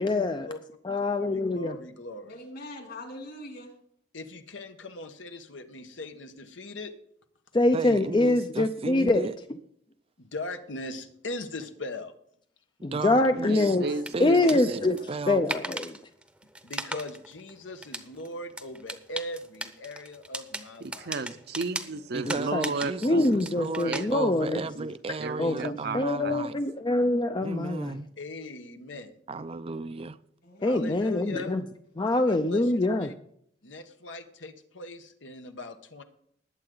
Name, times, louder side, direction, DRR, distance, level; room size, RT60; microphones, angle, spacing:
voice 1, 0.0-0.4 0.9-1.7 7.5-9.2 12.8-13.9 14.2-15.0 15.3-15.9 22.3-22.7 23.0-24.6 25.4-27.9 30.6-31.6 32.0-33.1, left 2 dB, 25° left, 0.5 m, -24 dB
voice 2, 1.2-2.2 4.1-6.9 10.2-12.1 16.6-21.1 28.2-29.1 30.6-31.6 32.3-33.1 33.6-36.0, left 2 dB, 85° left, 1.3 m, -40 dB
voice 3, 2.3-3.7 13.7-14.0 15.0-15.1 22.9-23.0 24.0-24.2 30.4-30.8, left 1 dB, 55° left, 3.0 m, -43 dB
voice 4, 7.7-9.3 12.9-13.8 14.1-14.8 15.1-15.4 22.1-26.6 27.4-28.1 29.3-30.2, right 3 dB, 30° right, 0.4 m, -35 dB
voice 5, 13.5-15.0 20.8-23.3 23.8-24.1 24.5-24.9 25.2-26.4, right 3 dB, 60° right, 0.7 m, -34 dB
sound 1, 13.8-24.0, right 1 dB, 5° right, 0.8 m, -38 dB
20.0 x 7.9 x 3.9 m
head